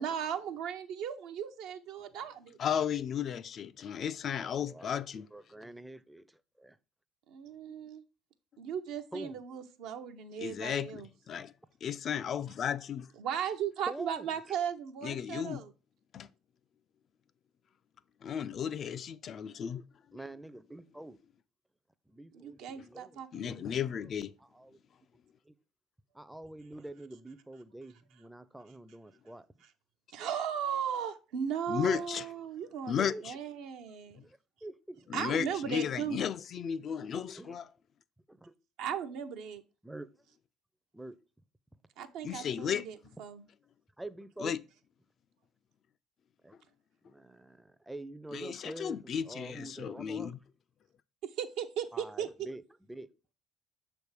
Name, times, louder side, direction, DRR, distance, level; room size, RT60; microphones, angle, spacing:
voice 1, 0.0-2.6 7.3-8.0 8.6-11.1 13.2-15.7 22.3-23.7 30.1-34.2 35.1-36.2 38.8-39.6 42.0-43.4 51.2-52.3, right 8 dB, 70° right, 0.6 m, -37 dB
voice 2, 2.6-5.3 10.4-11.5 11.8-13.1 15.0-15.6 16.1-16.3 18.2-19.8 23.3-24.3 31.7-32.3 32.9-33.3 34.2-34.3 35.1-37.7 42.2-42.9 44.4-44.6 48.3-50.4, left 8 dB, 50° left, 0.3 m, -34 dB
voice 3, 4.4-6.8 9.1-9.4 13.9-14.6 20.1-21.2 22.1-23.1 23.4-24.1 24.4-24.8 25.5-25.6 26.1-29.5 33.0-33.2 34.2-35.1 37.4-37.6 38.3-38.5 39.8-40.1 40.9-41.2 44.0-44.5 46.4-46.6 47.0-50.3 51.9-52.6 52.9-53.1, right 1 dB, 10° right, 0.5 m, -46 dB
6.4 x 3.4 x 4.7 m
hypercardioid pair, 60°, 0 cm